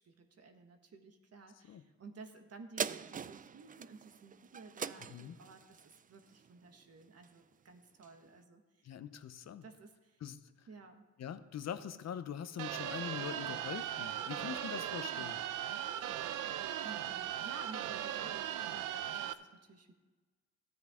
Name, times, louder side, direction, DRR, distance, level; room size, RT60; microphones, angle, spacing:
voice 1, 0.0-8.9 9.6-10.2 10.7-11.1 16.3-19.9, right 4 dB, 50° right, 6 dB, 1.5 m, -54 dB
sound 1, 2.8-7.5 8.0-8.1, right 7 dB, 25° right, 0.4 m, -43 dB
voice 2, 8.8-9.6 10.2-10.4 11.2-15.4, left 8 dB, 55° left, 12 dB, 0.8 m, -43 dB
sound 2, 12.6-19.3, right 11 dB, 75° right, 0.6 m, -38 dB
13.5 x 9.6 x 3.7 m, 1.3 s
supercardioid pair, 70°, 32 cm